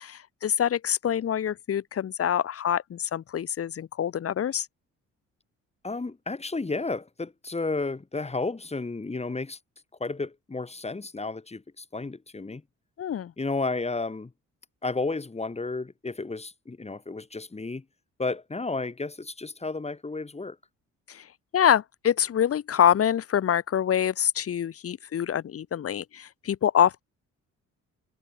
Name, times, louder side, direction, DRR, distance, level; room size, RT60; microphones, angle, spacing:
voice 1, 0.0-4.7 13.0-13.3 21.1-21.3 21.5-27.0, left 9 dB, 50° left, 1.2 m, -25 dB
voice 2, 5.8-9.6 10.0-12.6 13.4-14.3 14.8-17.8 18.2-20.6, left 3 dB, 20° left, 4.0 m, -32 dB
cardioid pair, 90°, 30 cm